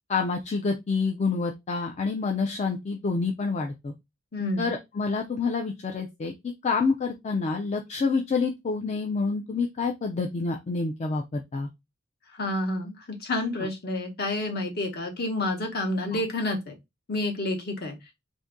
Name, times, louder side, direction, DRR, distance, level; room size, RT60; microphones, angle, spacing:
voice 1, 0.1-3.9 4.6-6.3 6.6-11.7 16.1-16.2, left 4 dB, 35° left, 0.3 m, -28 dB
voice 2, 4.3-4.7 12.3-16.7 17.1-18.0, left 2 dB, 50° left, 1.0 m, -29 dB
2.6 x 2.5 x 3.5 m
head